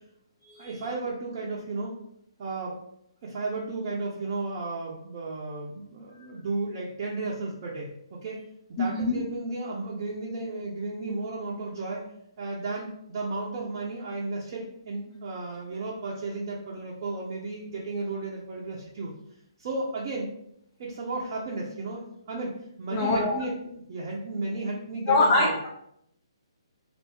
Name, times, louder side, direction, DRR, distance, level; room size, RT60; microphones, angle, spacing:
voice 1, 0.6-2.0 2.4-2.8 3.2-8.4 8.8-12.0 12.4-19.1 19.6-20.3 20.8-25.5, right 3 dB, 35° right, -5 dB, 0.6 m, -34 dB
voice 2, 8.8-9.2 22.9-23.4 25.1-25.7, left 2 dB, 30° left, -1 dB, 0.5 m, -24 dB
3.2 x 2.5 x 3.1 m, 0.73 s
figure-of-eight pair, 130°, 3 cm